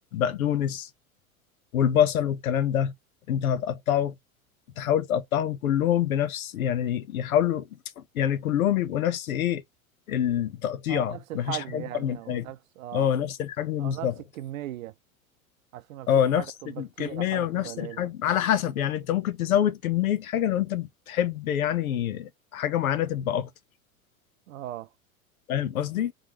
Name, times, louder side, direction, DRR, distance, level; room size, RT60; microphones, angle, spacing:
voice 1, 0.1-0.9 1.7-2.9 3.3-4.1 4.8-7.7 8.0-9.6 10.1-12.4 12.9-14.1 16.1-16.4 16.8-23.5 25.5-26.1, left 10 dB, 75° left, 0.7 m, -26 dB
voice 2, 10.9-13.1 13.8-14.9 15.7-16.1 16.4-18.0 24.5-24.9, right 14 dB, 70° right, 0.6 m, -38 dB
3.9 x 3.4 x 2.9 m
figure-of-eight pair, 85°, 43 cm